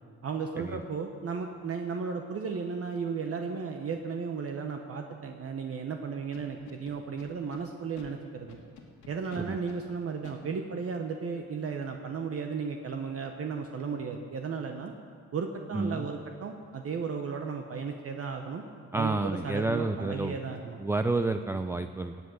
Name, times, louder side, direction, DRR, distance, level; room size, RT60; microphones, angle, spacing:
voice 1, 0.2-8.6 9.1-14.9 15.3-18.6 18.9-20.8, right 5 dB, 50° right, 4 dB, 1.1 m, -35 dB
Scratching (performance technique), 6.3-7.6 8.0-8.1 8.5-9.8 10.2-10.4, left 6 dB, 75° left, 2.2 m, -50 dB
voice 2, 15.7-16.1 18.9-20.4 20.8-22.3, right 2 dB, 10° right, 8 dB, 0.4 m, -30 dB
18.5 x 8.1 x 6.5 m, 2.3 s
cardioid pair, 90°, 30 cm